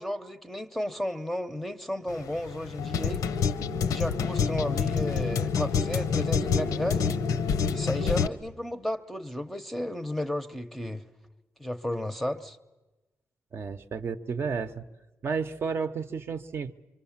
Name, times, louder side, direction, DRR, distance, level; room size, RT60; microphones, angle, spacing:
voice 1, 0.0-3.3 3.9-7.2 7.7-11.0 11.6-12.6, left 1 dB, 5° left, 8 dB, 0.7 m, -33 dB
sound 1, 2.1-8.3, left 6 dB, 90° left, 0.8 m, -27 dB
voice 2, 13.5-14.8 15.2-16.7, right 5 dB, 45° right, 9 dB, 0.8 m, -32 dB
24.5 x 24.5 x 7.2 m, 1.1 s
wide cardioid pair, 145°, 6 cm